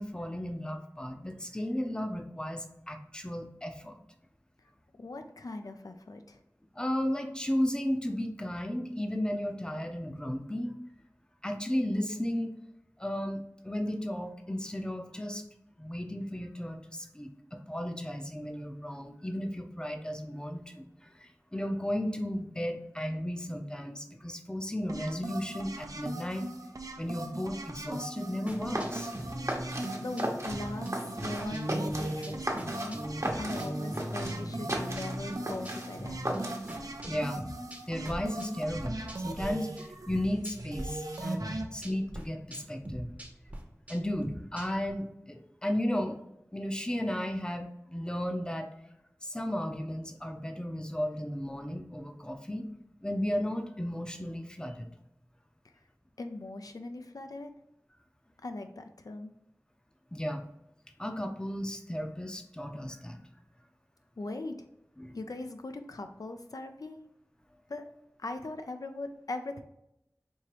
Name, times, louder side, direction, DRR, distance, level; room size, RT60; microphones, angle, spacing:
voice 1, 0.0-4.0 6.8-10.7 11.4-12.6 13.0-15.4 15.8-20.9 21.2-26.4 27.0-29.1 37.0-37.4 37.9-43.1 43.9-46.2 46.5-48.7 49.2-52.6 53.0-54.9 60.1-60.4 61.0-63.2 65.0-65.2, equal, 15° left, 5 dB, 0.5 m, -34 dB
voice 2, 5.0-6.4 29.4-29.7 29.9-33.0 33.4-36.5 56.2-57.5 58.4-59.3 64.2-64.7 65.1-67.0 67.7-67.9 68.2-69.6, left 2 dB, 80° left, 6 dB, 0.4 m, -40 dB
sound 1, 24.9-41.6, right 2 dB, 75° right, 0.5 m, -40 dB
sound 2, 28.5-39.5 39.8-40.8 41.1-44.9, right 1 dB, 25° right, 0.7 m, -40 dB
sound 3, 28.5-36.9, right 1 dB, 55° right, 0.9 m, -37 dB
4.5 x 2.8 x 3.0 m, 0.83 s
wide cardioid pair, 45°, 6 cm